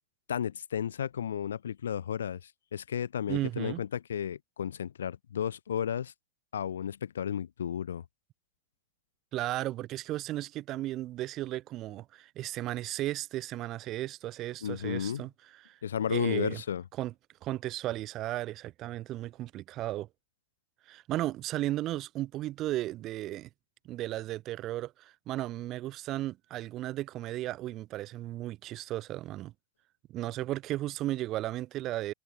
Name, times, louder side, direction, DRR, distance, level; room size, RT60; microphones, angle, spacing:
voice 1, 0.3-2.4 2.7-6.1 6.5-8.0 14.6-15.3 15.8-16.8, left 9 dB, 65° left, 2.7 m, -33 dB
voice 2, 3.3-3.8 9.3-15.3 15.6-15.8 16.1-16.6 17.0-17.1 17.4-20.1 20.9-23.5 23.9-29.5 30.1-32.1, right 15 dB, 35° right, 6.7 m, -35 dB
figure-of-eight pair, 90°, 0 cm